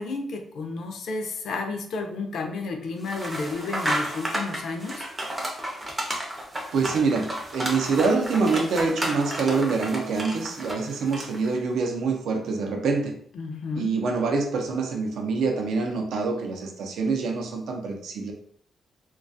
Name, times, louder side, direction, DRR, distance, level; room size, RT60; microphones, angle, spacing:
voice 1, 0.0-5.1 13.3-13.9, left 3 dB, 65° left, 4 dB, 0.4 m, -32 dB
sound 1, 3.0-11.5, right 1 dB, 15° right, 0.4 m, -32 dB
voice 2, 6.7-13.1 13.8-18.3, right 4 dB, 80° right, 3 dB, 0.5 m, -25 dB
2.3 x 2.2 x 2.6 m, 0.62 s
wide cardioid pair, 170°, 0 cm